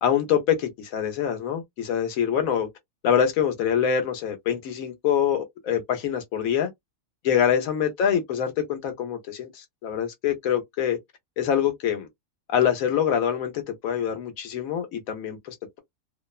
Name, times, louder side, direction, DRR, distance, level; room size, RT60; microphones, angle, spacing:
voice 1, 0.0-2.7 3.0-6.7 7.2-11.0 11.4-12.1 12.5-15.8, left 8 dB, 85° left, 1.1 m, -25 dB
2.8 x 2.0 x 2.3 m
omnidirectional pair, 1.4 m